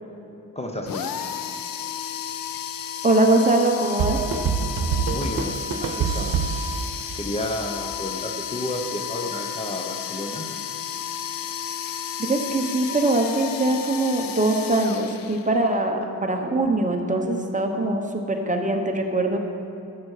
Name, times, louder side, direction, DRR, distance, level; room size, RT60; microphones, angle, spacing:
voice 1, 0.5-1.1 5.1-6.5 7.2-10.5, left 1 dB, 20° left, 2 dB, 0.9 m, -31 dB
sound 1, 0.9-15.7, left 8 dB, 75° left, 0.7 m, -32 dB
voice 2, 3.0-4.2 12.2-18.0 18.3-19.4, right 2 dB, 20° right, 3 dB, 1.0 m, -22 dB
sound 2, 4.0-7.6, right 6 dB, 80° right, 0.9 m, -26 dB
13.0 x 7.7 x 4.9 m, 2.9 s
wide cardioid pair, 110°, 34 cm